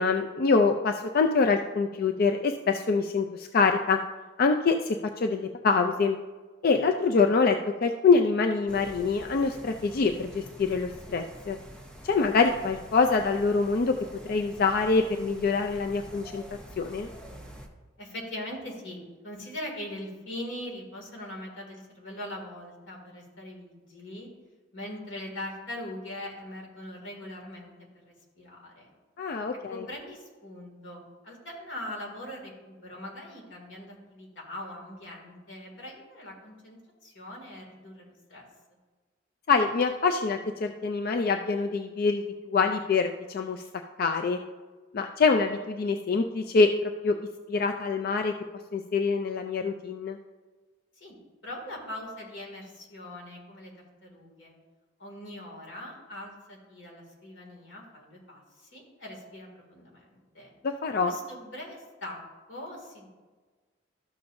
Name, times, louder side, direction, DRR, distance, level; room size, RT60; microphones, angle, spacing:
voice 1, 0.0-4.0 4.4-6.2 6.6-11.6 12.0-14.0 14.3-16.4 16.8-17.1 29.2-29.7 39.5-43.6 44.0-44.4 44.9-47.2 47.5-48.3 48.7-50.2 60.6-61.1, left 4 dB, 55° left, 6 dB, 0.4 m, -25 dB
sound 1, 8.7-17.7, equal, 5° left, 0.8 m, -47 dB
voice 2, 18.0-24.3 24.7-28.9 29.7-38.4 51.0-51.2 51.4-53.7 54.0-54.5 55.0-60.5 61.1-62.2 62.5-63.1, left 1 dB, 90° left, -1 dB, 2.3 m, -41 dB
12.5 x 6.9 x 2.6 m, 1.3 s
head